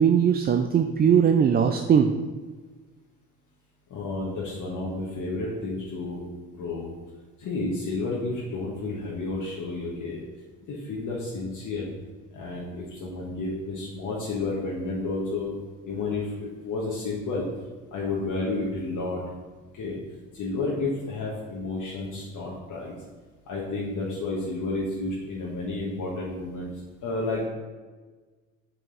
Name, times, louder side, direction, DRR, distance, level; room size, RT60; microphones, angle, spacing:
voice 1, 0.0-2.1, right 7 dB, 25° right, 6 dB, 0.4 m, -20 dB
voice 2, 3.9-6.2 6.5-6.9 7.4-10.2 10.7-11.9 12.3-15.5 15.8-17.5 17.9-19.2 19.7-20.0 20.3-23.0 23.5-27.5, left 3 dB, 55° left, -5 dB, 1.4 m, -31 dB
5.8 x 4.9 x 3.9 m, 1.4 s
hypercardioid pair, 60°, 38 cm